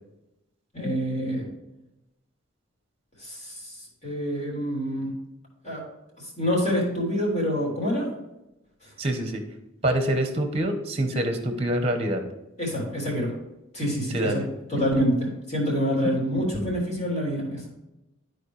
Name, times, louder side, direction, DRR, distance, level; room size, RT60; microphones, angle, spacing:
voice 1, 0.7-1.5 3.2-5.1 5.6-5.8 6.4-8.1 8.8-8.9 12.6-13.3 13.7-17.6, equal, 35° left, -3 dB, 3.2 m, -27 dB
voice 2, 9.0-9.4 9.8-12.2 14.1-14.5 14.8-15.0, right 1 dB, 30° right, 6 dB, 1.0 m, -26 dB
13.0 x 4.5 x 3.3 m, 0.93 s
head